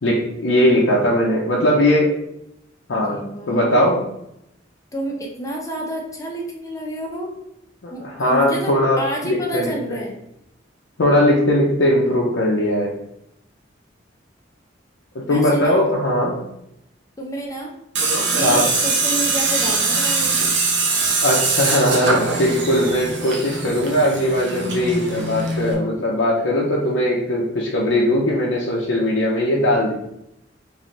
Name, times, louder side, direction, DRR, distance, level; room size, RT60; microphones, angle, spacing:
voice 1, 0.0-2.1 2.9-3.2 3.5-4.0 7.8-9.0 9.2-10.0 11.0-12.9 15.3-16.4 18.4-18.7 21.2-29.9, left 1 dB, 90° left, -3 dB, 0.6 m, -19 dB
voice 2, 2.9-3.9 4.9-7.3 7.9-10.2 15.2-15.9 17.2-17.7 18.3-20.4, right 1 dB, 20° left, -1 dB, 0.8 m, -29 dB
Tools, 18.0-25.7, right 3 dB, 70° right, 0.8 m, -22 dB
3.2 x 2.6 x 3.9 m, 0.81 s
head